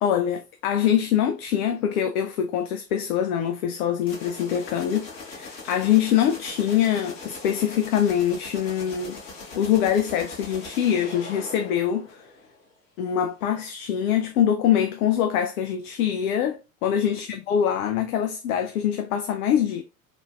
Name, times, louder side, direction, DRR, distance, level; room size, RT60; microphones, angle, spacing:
voice 1, 0.0-9.2 9.5-12.3 13.0-19.8, left 9 dB, 60° left, 0.5 m, -24 dB
sound 1, 4.0-12.7, left 3 dB, 45° left, 1.8 m, -41 dB
3.6 x 2.5 x 2.3 m
figure-of-eight pair, 75°, 48 cm